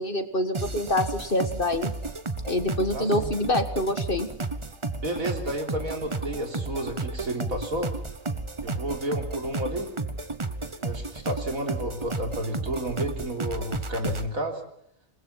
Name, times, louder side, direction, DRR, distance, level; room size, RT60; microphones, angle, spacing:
voice 1, 0.0-1.9 2.5-4.3, left 1 dB, 40° left, 10 dB, 1.8 m, -26 dB
sound 1, 0.5-14.3, right 3 dB, 25° right, 1.0 m, -33 dB
voice 2, 2.9-3.3 5.0-7.9 8.6-9.9 10.8-14.6, right 1 dB, 75° right, 4 dB, 4.1 m, -31 dB
28.5 x 20.5 x 5.8 m, 0.72 s
omnidirectional pair, 1.5 m